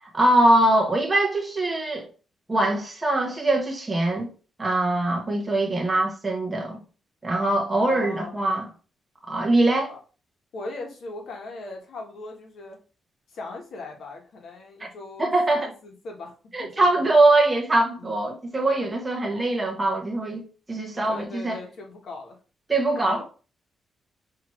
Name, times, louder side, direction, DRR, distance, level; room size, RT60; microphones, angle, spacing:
voice 1, 0.0-2.1 2.5-4.3 4.6-6.8 7.2-8.7 9.3-9.9 15.2-15.7 16.5-21.6 22.7-23.2, right 2 dB, 15° right, 1.0 m, -22 dB
voice 2, 7.8-8.3 9.9-10.0 10.5-12.8 13.3-17.1 18.0-18.1 21.0-22.4 22.9-23.2, left 3 dB, 55° left, 1.3 m, -39 dB
6.0 x 2.9 x 3.0 m
wide cardioid pair, 175°, 0 cm